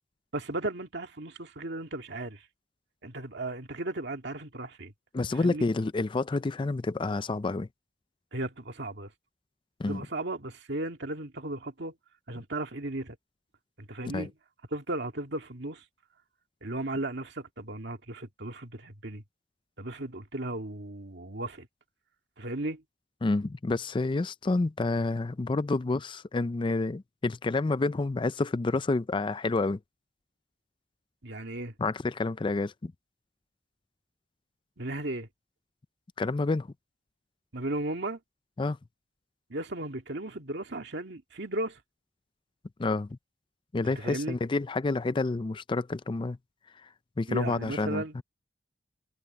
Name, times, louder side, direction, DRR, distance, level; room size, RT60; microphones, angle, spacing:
voice 1, 0.3-2.4 3.0-4.9 5.4-5.7 8.3-9.1 9.8-11.9 12.3-13.2 13.8-14.3 14.7-15.8 16.6-19.2 19.8-21.7 22.4-22.8 31.2-31.7 34.8-35.3 37.5-38.2 39.5-41.8 43.8-44.4 47.3-48.2, right 2 dB, 65° right, 2.2 m, -35 dB
voice 2, 5.1-7.7 9.8-10.0 14.1-14.3 23.2-29.8 31.8-32.9 36.2-36.7 38.6-38.8 42.8-43.2 43.7-46.4 46.8-46.9 47.2-48.2, left 3 dB, 25° left, 0.4 m, -29 dB
head